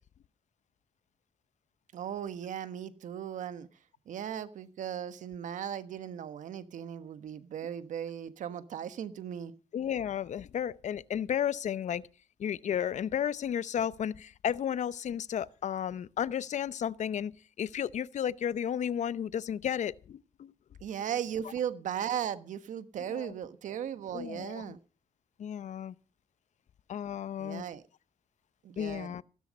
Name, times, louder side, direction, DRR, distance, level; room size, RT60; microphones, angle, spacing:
voice 1, 1.9-3.7 4.1-9.5 20.8-24.8 27.4-27.8 28.6-29.1, right 9 dB, 90° right, 1.3 m, -37 dB
voice 2, 9.7-12.0 12.4-17.3 17.6-20.5 23.1-23.3 24.1-24.7 25.4-25.9 26.9-27.6 28.8-29.2, left 9 dB, 70° left, 0.8 m, -33 dB
16.5 x 13.0 x 5.2 m
cardioid pair, 95°, 13 cm